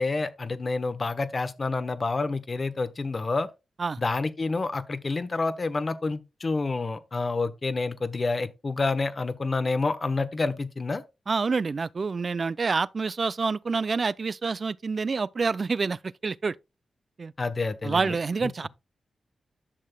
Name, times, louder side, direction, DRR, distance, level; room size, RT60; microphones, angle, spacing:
voice 1, 0.0-3.5 4.0-11.0 17.4-18.2, left 3 dB, 45° left, 1.1 m, -28 dB
voice 2, 11.3-16.6 17.2-17.3 17.8-18.7, right 4 dB, 55° right, 0.4 m, -27 dB
11.5 x 6.5 x 2.2 m
cardioid pair, 50°, 0 cm